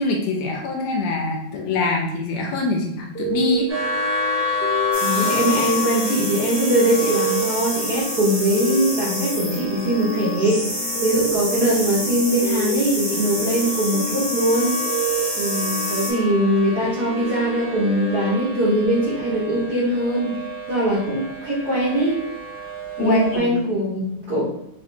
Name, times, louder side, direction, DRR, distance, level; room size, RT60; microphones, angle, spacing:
voice 1, 0.0-3.7 23.0-23.5, left 3 dB, 80° left, 1 dB, 1.7 m, -23 dB
sound 1, 3.1-19.5, equal, 60° left, 1.0 m, -30 dB
sound 2, 3.7-23.4, left 2 dB, 30° right, 1.4 m, -31 dB
sound 3, 4.9-16.1, equal, 30° left, 0.6 m, -28 dB
voice 2, 4.9-14.7 15.4-20.4 20.7-22.2 23.0-24.5, right 1 dB, 75° right, -8 dB, 0.9 m, -21 dB
4.2 x 3.3 x 2.7 m, 0.77 s
omnidirectional pair, 3.3 m